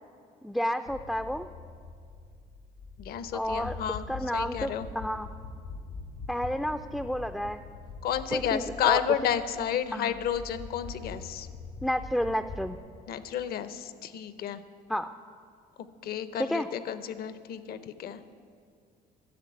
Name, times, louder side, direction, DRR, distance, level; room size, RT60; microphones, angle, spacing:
voice 1, 0.4-1.5 3.3-3.8 4.1-5.3 6.3-7.6 8.3-9.0 9.9-10.2 11.8-12.8 14.9-15.1 16.4-16.7, equal, ahead, 7 dB, 0.3 m, -30 dB
sound 1, 0.9-12.8, left 4 dB, 85° left, 2.2 m, -44 dB
voice 2, 3.0-4.1 4.3-4.9 8.0-11.5 13.1-14.6 16.0-18.2, left 9 dB, 65° left, 13 dB, 0.7 m, -31 dB
10.5 x 7.5 x 9.4 m, 2.2 s
cardioid pair, 110°, 17 cm